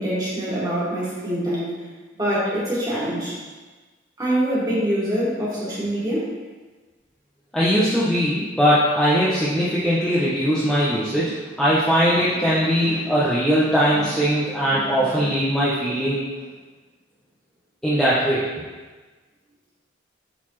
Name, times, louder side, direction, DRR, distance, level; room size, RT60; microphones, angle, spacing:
voice 1, 0.0-1.8 2.1-3.4 4.2-6.3, right 1 dB, 20° right, -8 dB, 1.9 m, -24 dB
voice 2, 7.5-16.2 17.8-18.5, equal, 5° left, -10 dB, 0.7 m, -20 dB
8.3 x 4.0 x 3.2 m, 1.3 s
head